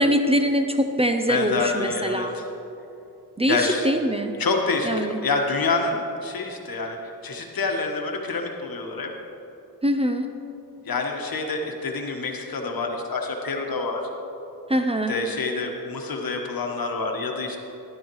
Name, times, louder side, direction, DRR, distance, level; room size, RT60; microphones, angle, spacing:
voice 1, 0.0-2.4 3.4-4.3 4.8-5.2 9.8-10.3 14.7-15.2, equal, 15° right, 6 dB, 0.5 m, -23 dB
voice 2, 1.3-2.4 3.5-3.9 4.4-7.0 7.2-9.1 10.9-14.0 15.1-17.6, left 3 dB, 65° left, 2 dB, 1.3 m, -27 dB
12.0 x 11.0 x 3.1 m, 2.9 s
cardioid pair, 75°, 38 cm